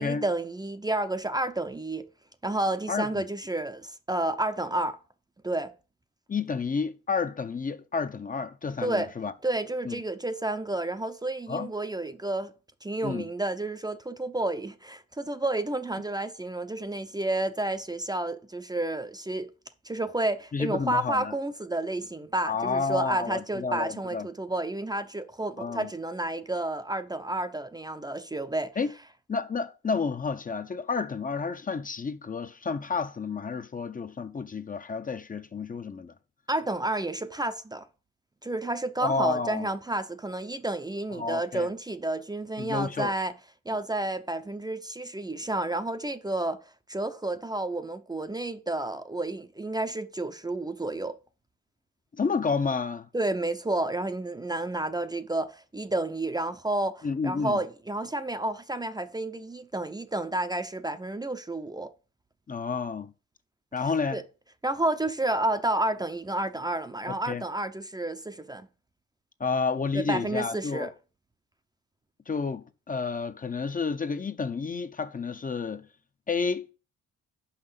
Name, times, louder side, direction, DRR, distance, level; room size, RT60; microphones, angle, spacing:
voice 1, 0.0-2.1 2.4-5.0 5.4-5.7 8.8-9.1 9.4-12.5 12.8-19.5 19.8-28.8 36.5-37.9 38.4-43.3 43.7-46.6 46.9-51.2 53.1-61.9 64.1-64.2 64.6-68.7 69.9-70.9, right 2 dB, 15° right, 0.7 m, -30 dB
voice 2, 2.9-3.2 6.3-9.3 9.8-9.9 11.5-11.7 13.0-13.3 20.5-21.3 22.4-24.3 25.6-25.9 28.8-28.9 29.3-36.1 39.0-39.7 41.1-41.7 42.6-43.1 52.2-53.1 57.0-57.6 62.5-63.1 63.7-64.2 67.1-67.4 69.4-70.9 72.3-75.9 76.3-76.7, left 5 dB, 30° left, 0.7 m, -30 dB
5.8 x 5.4 x 6.7 m
cardioid pair, 90°, 30 cm